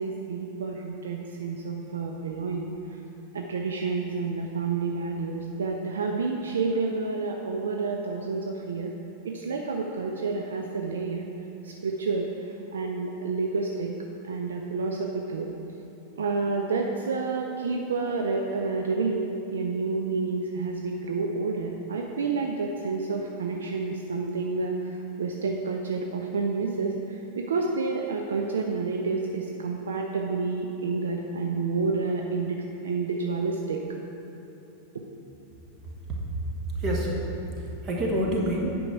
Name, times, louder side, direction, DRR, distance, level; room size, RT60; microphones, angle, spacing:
voice 1, 0.0-2.7 3.3-8.9 9.2-11.3 11.6-12.3 12.7-13.9 14.2-15.5 16.2-24.7 25.2-33.8, right 4 dB, 65° right, 1 dB, 0.5 m, -29 dB
voice 2, 35.8-36.2 36.7-38.7, right 1 dB, 30° right, -1 dB, 1.5 m, -28 dB
8.8 x 5.4 x 4.7 m, 2.9 s
figure-of-eight pair, 90°, 0 cm